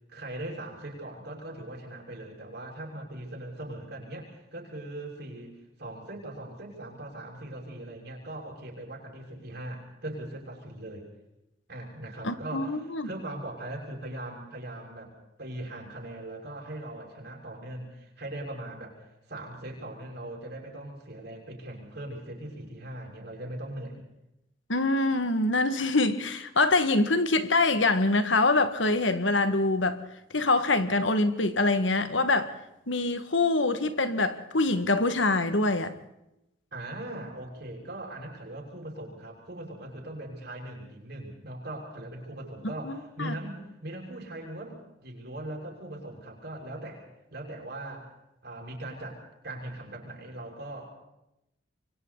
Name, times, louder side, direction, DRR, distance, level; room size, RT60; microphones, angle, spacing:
voice 1, 0.1-5.5 5.8-11.1 11.7-24.0 36.7-47.1 47.3-48.1 48.4-50.9, right 1 dB, 60° right, 6.2 m, -40 dB
voice 2, 12.2-13.1 24.7-30.0 30.3-32.5 32.9-35.9 42.8-43.3, left 2 dB, 85° left, 2.0 m, -25 dB
27.5 x 24.0 x 4.1 m
head